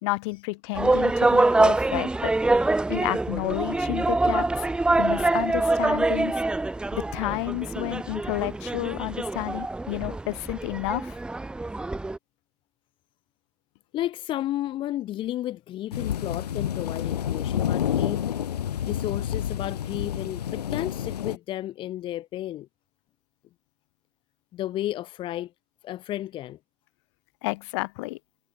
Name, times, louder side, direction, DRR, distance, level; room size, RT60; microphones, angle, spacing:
voice 1, 0.0-2.3 2.9-4.7 5.0-6.4 6.9-11.2 27.4-28.2, left 25 dB, 45° left, 4.5 m, -31 dB
sound 1, 0.7-12.2, right 2 dB, 5° right, 1.5 m, -25 dB
voice 2, 13.9-18.2 18.9-22.7 24.5-25.5 25.8-26.6, left 13 dB, 25° left, 2.1 m, -32 dB
sound 2, 15.9-21.4, left 10 dB, 75° left, 2.3 m, -29 dB
hypercardioid pair, 140°, 20 cm